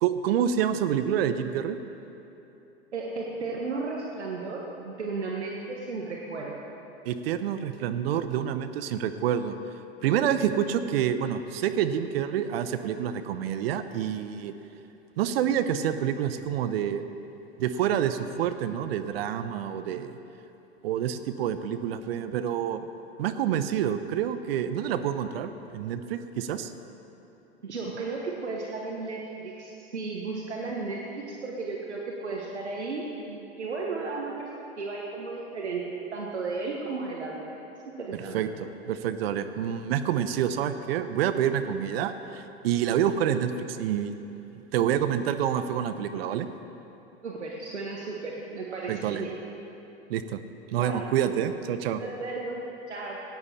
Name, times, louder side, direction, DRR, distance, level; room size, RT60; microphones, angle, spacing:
voice 1, 0.0-1.8 7.0-9.5 10.0-14.5 15.2-17.1 17.6-20.2 20.8-22.9 23.2-26.7 38.1-44.1 44.7-46.5 48.9-49.2 50.1-50.4 50.7-52.0, right 9 dB, 60° right, 10 dB, 0.8 m, -28 dB
voice 2, 2.9-6.5 10.0-10.4 27.6-34.5 34.8-37.6 37.8-38.4 47.2-49.3 50.8-51.1 52.0-53.2, right 3 dB, 85° right, -2 dB, 1.3 m, -34 dB
16.0 x 9.5 x 4.2 m, 3.0 s
hypercardioid pair, 90°, 33 cm